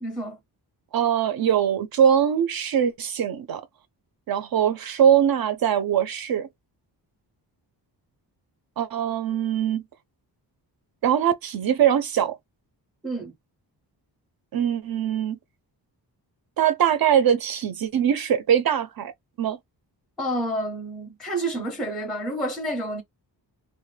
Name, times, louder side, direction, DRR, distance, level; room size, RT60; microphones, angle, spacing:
voice 1, 0.0-0.4 13.0-13.3 20.2-23.0, right 1 dB, ahead, 0.5 m, -29 dB
voice 2, 0.9-3.6 4.3-6.5 8.8-9.8 11.0-12.4 14.5-15.4 16.6-19.1 19.4-19.6, right 9 dB, 60° right, 0.5 m, -22 dB
2.1 x 2.1 x 3.1 m
wide cardioid pair, 150°, 41 cm